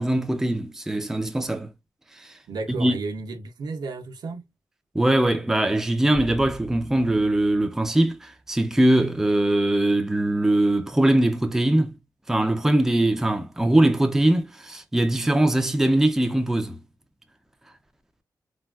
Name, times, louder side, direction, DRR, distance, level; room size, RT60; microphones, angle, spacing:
voice 1, 0.0-1.7 2.2-2.3 2.8-3.0 4.9-11.9 12.3-16.8, right 1 dB, 5° right, 0.4 m, -21 dB
voice 2, 2.5-4.5, right 3 dB, 80° right, 0.6 m, -33 dB
sound 1, 6.1-8.7, equal, 50° left, 1.0 m, -43 dB
3.3 x 2.2 x 2.3 m
wide cardioid pair, 130°, 7 cm